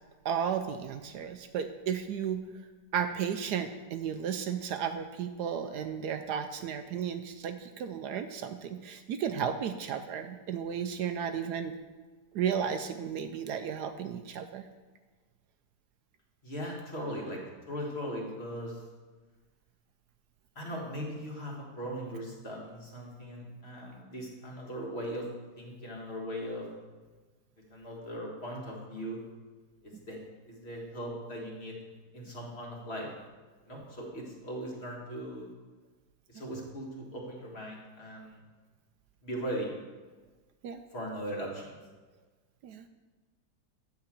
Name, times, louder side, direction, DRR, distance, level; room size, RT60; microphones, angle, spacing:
voice 1, 0.2-2.4 2.9-11.8 12.3-14.6 40.6-40.8 42.6-42.8, right 8 dB, 75° right, 8 dB, 1.1 m, -34 dB
voice 2, 16.4-17.4 17.7-18.8 20.6-25.3 25.6-26.7 27.7-29.2 29.8-30.2 30.5-31.8 32.1-33.1 33.7-35.5 36.3-38.4 39.2-39.7 40.9-41.7, equal, 35° left, -2 dB, 1.8 m, -39 dB
8.9 x 4.7 x 7.4 m, 1.3 s
omnidirectional pair, 1.9 m